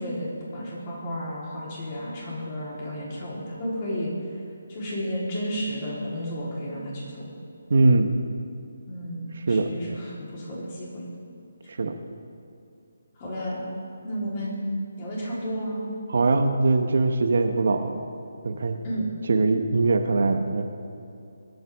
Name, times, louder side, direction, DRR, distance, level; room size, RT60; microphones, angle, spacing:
voice 1, 0.0-4.1 4.7-7.3 8.9-11.1 13.2-13.7 14.0-14.7 15.0-15.9 18.8-19.1, equal, 30° left, -6 dB, 3.6 m, -32 dB
voice 2, 7.7-8.2 9.5-9.7 11.7-11.9 16.1-18.0 18.4-18.8 19.3-20.7, right 3 dB, 60° right, 6 dB, 1.0 m, -22 dB
22.5 x 9.2 x 3.6 m, 2.7 s
hypercardioid pair, 170°, 0 cm